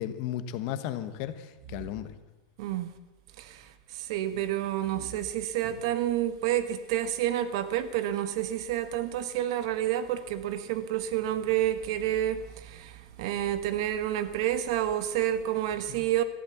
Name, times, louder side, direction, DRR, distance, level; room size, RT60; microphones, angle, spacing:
voice 1, 0.0-2.1, left 11 dB, 45° left, 11 dB, 1.1 m, -34 dB
voice 2, 2.6-2.9 3.4-16.2, right 12 dB, 55° right, 11 dB, 1.3 m, -29 dB
14.0 x 12.0 x 7.2 m, 1.1 s
supercardioid pair, 175°, 3 cm